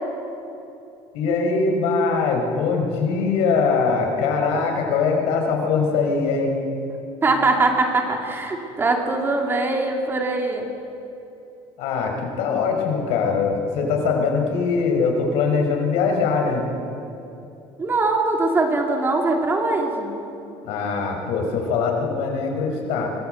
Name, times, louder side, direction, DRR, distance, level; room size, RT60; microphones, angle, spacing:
voice 1, 1.1-6.5 11.8-16.7 20.6-23.1, left 4 dB, 80° left, 2 dB, 4.8 m, -22 dB
voice 2, 7.2-10.7 17.8-20.1, right 3 dB, 20° right, 2 dB, 2.6 m, -22 dB
24.5 x 19.0 x 7.8 m, 2.8 s
cardioid pair, 160°, 10 cm